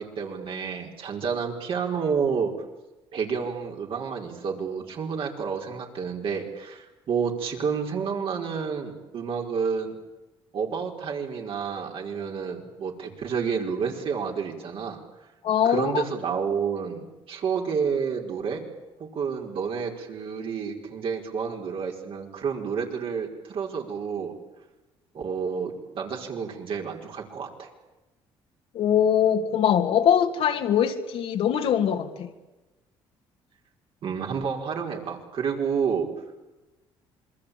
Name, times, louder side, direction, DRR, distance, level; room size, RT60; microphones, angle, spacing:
voice 1, 0.0-2.5 3.1-10.0 10.5-15.0 15.6-18.6 19.0-24.3 25.1-27.7 34.0-36.1, right 6 dB, 60° right, 5.1 m, -30 dB
voice 2, 15.4-16.0 28.7-32.3, left 9 dB, 70° left, 2.7 m, -22 dB
27.5 x 22.0 x 8.7 m
supercardioid pair, 80°, 10 cm